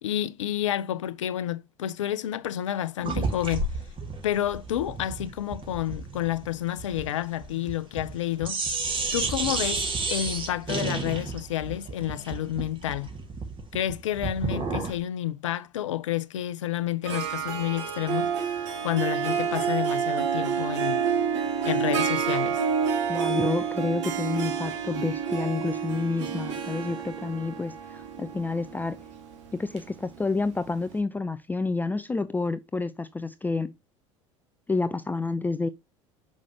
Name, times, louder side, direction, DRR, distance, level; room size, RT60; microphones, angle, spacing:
voice 1, 0.0-3.7 4.2-8.6 9.1-13.1 13.7-18.3 18.8-21.0 21.6-22.6, left 12 dB, 70° left, 0.6 m, -30 dB
sound 1, 3.0-8.2 8.4-15.0, right 3 dB, 30° right, 2.2 m, -32 dB
Harp, 17.0-30.6, right 7 dB, 70° right, 1.4 m, -29 dB
voice 2, 23.1-29.0 29.5-33.7 34.7-35.7, left 3 dB, 10° left, 0.4 m, -29 dB
6.3 x 5.4 x 2.9 m
figure-of-eight pair, 65°, 16 cm